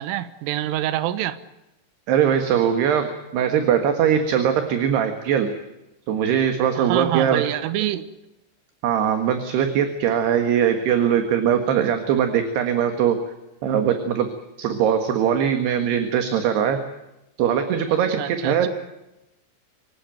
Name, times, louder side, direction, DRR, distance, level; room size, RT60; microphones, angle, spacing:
voice 1, 0.0-1.4 6.8-8.1 18.2-18.7, right 13 dB, 85° right, 13 dB, 3.6 m, -26 dB
voice 2, 2.1-5.5 6.1-7.4 8.8-13.2 13.6-14.3 14.6-16.8 17.4-18.7, right 8 dB, 65° right, 7 dB, 3.5 m, -21 dB
25.5 x 17.0 x 9.2 m, 0.93 s
omnidirectional pair, 5.6 m